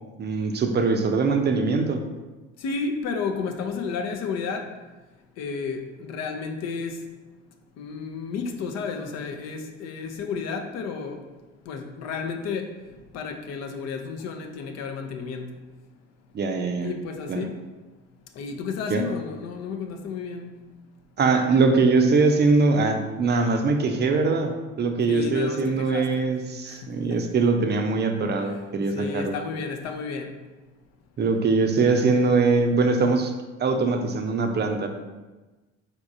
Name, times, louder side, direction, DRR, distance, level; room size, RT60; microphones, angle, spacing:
voice 1, 0.2-2.0 16.3-16.9 17.3-17.4 18.9-19.0 21.2-29.3 31.2-33.3 33.6-34.9, right 4 dB, 35° right, 5 dB, 0.6 m, -22 dB
voice 2, 2.6-4.7 5.4-7.0 7.8-11.2 11.7-12.7 13.1-15.5 16.8-17.6 18.4-20.6 25.1-26.2 26.7-27.2 28.4-28.6 28.9-30.3, left 5 dB, 55° left, 5 dB, 0.6 m, -32 dB
4.0 x 3.5 x 2.6 m, 1.2 s
hypercardioid pair, 55°, 31 cm